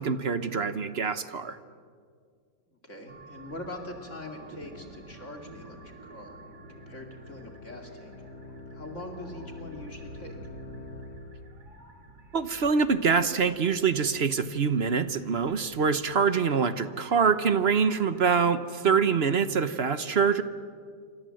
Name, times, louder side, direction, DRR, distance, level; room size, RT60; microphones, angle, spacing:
voice 1, 0.0-1.6 12.3-20.4, right 6 dB, 45° right, 12 dB, 1.0 m, -25 dB
voice 2, 2.8-6.4 6.7-8.1 8.7-10.4, left 1 dB, 45° left, 3 dB, 2.6 m, -43 dB
sound 1, 3.1-19.2, right 2 dB, 70° right, 3.7 m, -51 dB
sound 2, 4.7-11.5, left 2 dB, 60° left, 3.6 m, -46 dB
27.5 x 25.0 x 7.7 m, 2.1 s
omnidirectional pair, 1.9 m